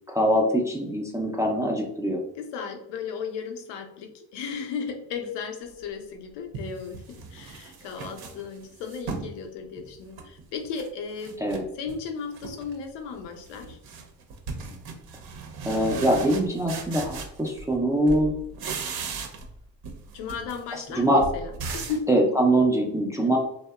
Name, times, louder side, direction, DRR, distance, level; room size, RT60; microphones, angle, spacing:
voice 1, 0.1-2.2 11.4-11.6 15.7-18.3 21.0-21.2 22.1-23.4, right 1 dB, 10° right, -1 dB, 0.4 m, -23 dB
voice 2, 2.4-11.4 11.7-13.8 20.1-22.0, left 6 dB, 70° left, 5 dB, 0.6 m, -35 dB
sound 1, 5.9-6.0 6.5-9.3 9.8-10.9 11.2-12.0 12.3-12.8 13.1-17.8 18.1-19.6 19.8-22.1, right 4 dB, 55° right, 0.6 m, -37 dB
2.7 x 2.1 x 2.2 m, 0.73 s
hypercardioid pair, 60°, 44 cm